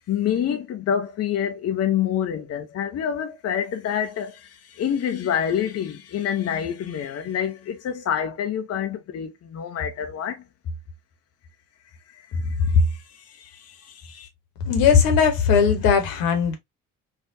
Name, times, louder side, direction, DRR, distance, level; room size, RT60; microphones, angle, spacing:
voice 1, 0.1-10.4 12.1-14.3, left 7 dB, 40° left, 0.6 m, -26 dB
voice 2, 14.7-16.6, left 6 dB, 60° left, 1.1 m, -18 dB
4.6 x 2.4 x 2.6 m
figure-of-eight pair, 45°, 39 cm